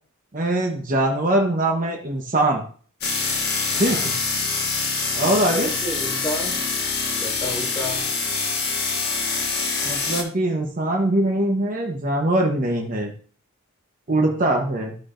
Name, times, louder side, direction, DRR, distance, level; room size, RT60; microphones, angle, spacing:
voice 1, 0.3-2.6 3.8-4.1 5.1-5.7 9.8-13.1 14.1-15.0, right 1 dB, 40° right, 1 dB, 1.0 m, -22 dB
sound 1, 3.0-10.2, left 4 dB, 50° left, 1.5 m, -25 dB
voice 2, 3.7-4.1 5.2-6.6 7.2-8.1 14.3-14.6, equal, 15° left, -4 dB, 2.3 m, -32 dB
13.5 x 4.6 x 2.5 m, 0.44 s
head